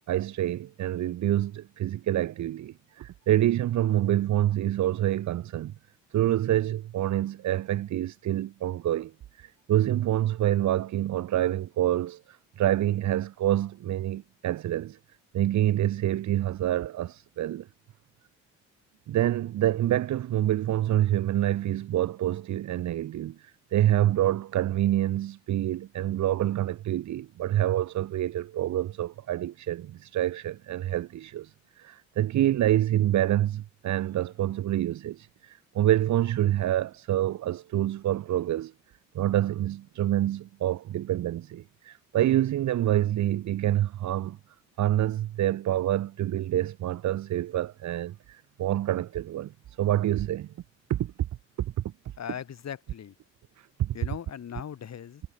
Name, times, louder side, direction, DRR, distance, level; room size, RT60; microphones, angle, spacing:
voice 1, 0.1-5.7 6.1-9.1 9.4-15.0 15.3-17.7 19.1-38.7 39.1-44.4 44.8-50.5 50.9-51.1 51.6-51.7 53.6-53.9, right 13 dB, 70° right, 0.9 m, -27 dB
voice 2, 52.2-53.2 53.9-55.2, left 8 dB, 60° left, 5.4 m, -39 dB
cardioid pair, 75°, 30 cm